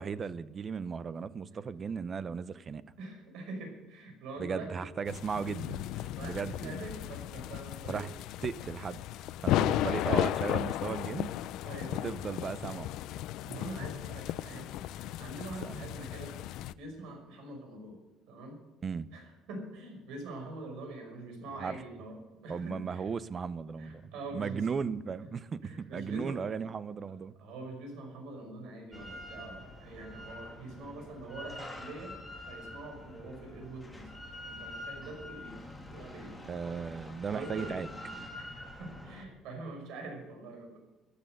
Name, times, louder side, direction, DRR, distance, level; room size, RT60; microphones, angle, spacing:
voice 1, 0.0-2.8 4.4-5.8 6.2-6.8 7.9-8.1 8.4-9.0 9.4-11.3 11.9-12.9 15.6-15.9 18.8-19.1 21.6-21.8 22.5-27.3 36.5-37.9, right 6 dB, 25° right, 17 dB, 0.6 m, -36 dB
voice 2, 3.0-4.9 5.9-8.0 11.6-12.0 13.5-14.6 14.9-16.3 16.7-18.0 18.3-18.6 19.1-23.1 23.8-24.7 25.6-26.4 27.4-32.1 32.5-34.1 34.4-35.6 35.9-36.4 37.3-37.7 38.3-40.8, right 2 dB, 75° right, 3 dB, 5.7 m, -44 dB
sound 1, 5.1-16.7, left 13 dB, 70° left, 0.5 m, -35 dB
Drill, 28.9-39.2, left 1 dB, ahead, 2.1 m, -46 dB
14.5 x 12.5 x 6.5 m, 1.1 s
cardioid pair, 165°, 0 cm